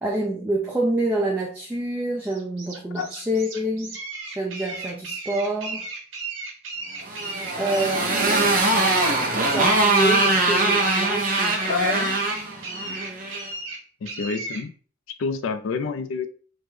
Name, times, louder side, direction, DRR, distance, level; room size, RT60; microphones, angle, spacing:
voice 1, 0.0-4.0 4.2-5.9 7.5-12.1, right 1 dB, 10° right, 0.4 m, -27 dB
sound 1, 2.2-14.6, right 3 dB, 80° right, 1.0 m, -35 dB
Motorcycle, 7.0-13.5, right 2 dB, 45° right, 0.7 m, -22 dB
voice 2, 11.6-12.0 12.8-13.0 14.0-14.7 15.2-16.3, left 5 dB, 80° left, 0.4 m, -28 dB
3.4 x 2.1 x 3.2 m
head